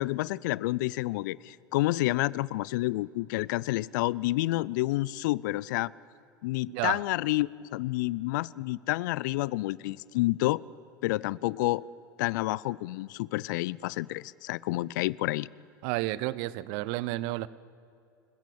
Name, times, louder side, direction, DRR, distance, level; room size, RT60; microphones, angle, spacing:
voice 1, 0.0-5.9 6.4-10.6 11.0-11.8 12.2-15.5, left 18 dB, 65° left, 23 dB, 0.4 m, -29 dB
voice 2, 6.7-7.0 15.8-17.5, right 18 dB, 60° right, 19 dB, 0.7 m, -31 dB
26.5 x 15.0 x 8.6 m, 2.5 s
hypercardioid pair, 75°, 11 cm